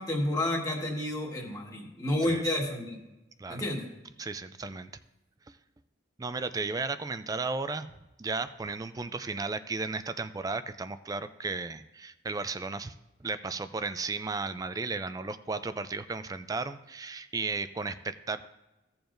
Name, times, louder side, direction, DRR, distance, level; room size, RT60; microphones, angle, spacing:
voice 1, 0.0-3.0 3.5-3.9, left 1 dB, 20° left, -2 dB, 1.6 m, -30 dB
voice 2, 4.2-4.9 6.2-12.9 13.2-18.5, right 3 dB, 20° right, 12 dB, 0.3 m, -34 dB
16.0 x 7.0 x 2.6 m, 1.0 s
head